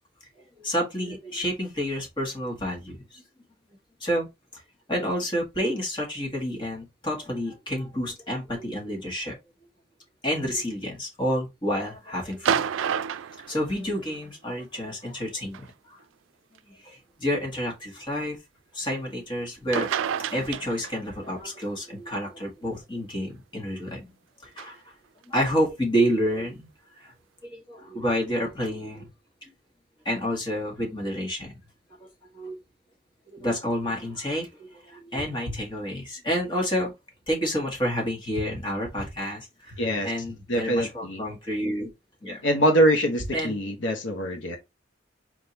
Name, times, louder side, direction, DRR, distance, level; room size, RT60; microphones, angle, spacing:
voice 1, 0.6-3.2 4.0-4.3 4.9-9.4 10.2-12.7 13.5-16.0 16.8-18.4 18.7-19.9 20.3-24.1 24.4-24.8 25.3-26.7 27.0-27.1 27.4-29.1 30.0-31.5 32.0-32.1 32.3-32.6 33.3-36.9 37.3-41.9 42.2-42.4 43.3-43.5, equal, 25° left, 1.7 m, -29 dB
sound 1, 12.3-14.2 15.5-15.7 16.6-16.7 19.5-19.6 19.7-21.2 24.6-24.7, right 8 dB, 90° right, 0.4 m, -28 dB
voice 2, 39.8-40.1 40.5-41.2 42.4-44.6, equal, 80° left, 1.1 m, -23 dB
4.7 x 3.6 x 2.9 m
head